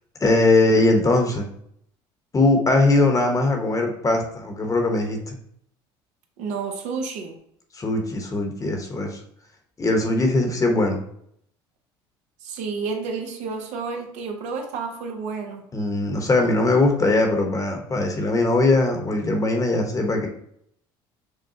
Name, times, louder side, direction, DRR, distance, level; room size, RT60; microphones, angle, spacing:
voice 1, 0.2-1.5 2.3-5.4 7.7-9.2 9.8-11.0 15.7-20.3, left 2 dB, 25° left, 3 dB, 1.0 m, -20 dB
voice 2, 6.4-7.4 12.4-15.6, right 5 dB, 70° right, 3 dB, 0.8 m, -30 dB
6.5 x 2.2 x 2.8 m, 0.69 s
supercardioid pair, 85°, 13 cm